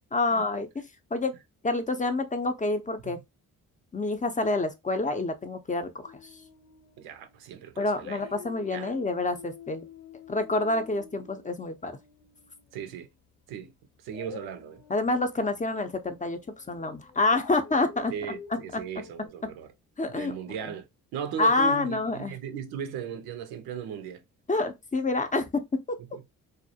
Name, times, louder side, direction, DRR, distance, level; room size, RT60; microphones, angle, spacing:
voice 1, 0.1-0.7 1.1-1.3 1.6-3.2 3.9-6.1 7.8-9.9 10.3-12.0 14.9-18.1 18.7-18.8 20.0-20.3 20.6-20.7 21.4-22.3 24.5-26.0, left 2 dB, 20° left, 0.5 m, -27 dB
Dog, 6.0-7.6 8.0-13.0 14.1-19.3, left 6 dB, 80° left, 0.8 m, -48 dB
voice 2, 7.0-8.2 8.7-8.9 12.7-13.1 13.5-13.7 14.0-14.8 18.1-19.7 20.1-20.9 21.1-24.2 26.1-26.2, right 8 dB, 85° right, 0.5 m, -37 dB
2.3 x 2.0 x 2.7 m
supercardioid pair, 50°, 36 cm